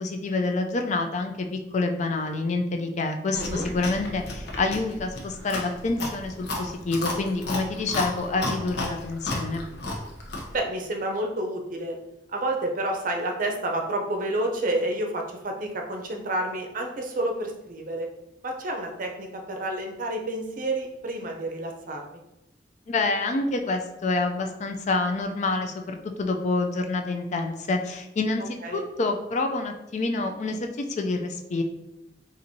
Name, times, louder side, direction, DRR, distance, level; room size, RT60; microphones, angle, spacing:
voice 1, 0.0-1.5 1.7-9.6 22.9-31.6, left 3 dB, 40° left, 4 dB, 0.4 m, -27 dB
Chewing mastication, 3.3-10.6, left 2 dB, 70° left, 0.8 m, -33 dB
voice 2, 3.3-3.6 10.5-12.0 12.3-18.1 18.4-22.2 28.6-28.8, right 1 dB, 50° right, 2 dB, 0.6 m, -29 dB
4.3 x 2.5 x 2.7 m, 0.93 s
head